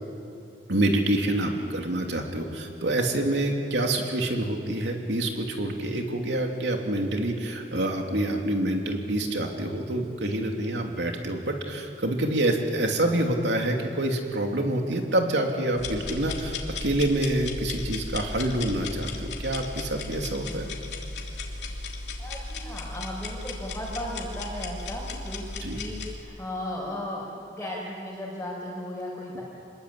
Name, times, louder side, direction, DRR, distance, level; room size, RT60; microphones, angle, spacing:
voice 1, 0.7-20.7 25.6-25.8, right 1 dB, 80° right, 2 dB, 3.1 m, -27 dB
sound 1, 15.8-26.2, left 3 dB, 75° left, 3.2 m, -35 dB
voice 2, 22.2-29.4, left 1 dB, 10° left, -7 dB, 5.0 m, -36 dB
26.5 x 21.5 x 8.6 m, 2.9 s
head